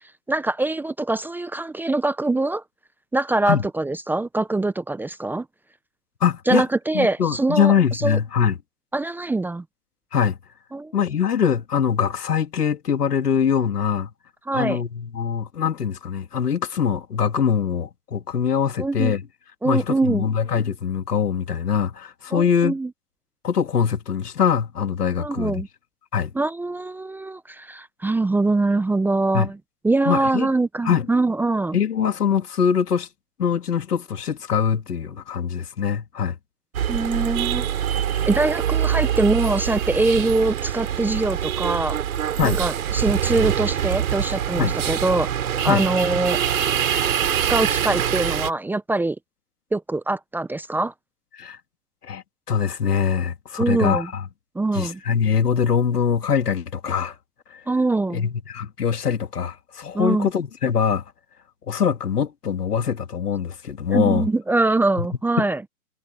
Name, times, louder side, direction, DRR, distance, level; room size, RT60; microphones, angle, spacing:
voice 1, 0.3-2.6 3.1-5.4 6.5-7.7 8.0-8.2 8.9-9.6 10.7-10.9 14.5-14.8 18.8-19.2 19.6-20.3 22.3-22.9 25.2-25.7 26.3-29.6 29.8-31.8 36.9-37.7 38.2-42.0 42.4-45.3 45.6-46.4 47.5-49.2 49.7-50.9 53.6-54.1 54.5-55.0 57.7-58.3 59.9-60.3 63.9-65.6, right 2 dB, 5° right, 1.0 m, -23 dB
voice 2, 6.2-6.6 6.9-8.5 10.1-10.4 10.9-14.1 14.5-19.2 19.6-22.8 23.4-25.6 26.1-26.3 29.3-29.5 30.1-30.5 30.9-31.1 31.7-33.1 33.4-36.4 42.4-42.6 44.6-44.7 45.7-45.8 51.3-51.6 52.0-54.2 54.7-57.1 57.5-57.6 58.1-61.0 61.7-64.2 65.4-65.5, left 7 dB, 80° left, 2.6 m, -23 dB
sound 1, 36.7-48.5, right 9 dB, 65° right, 7.1 m, -24 dB
hypercardioid pair, 130°, 46 cm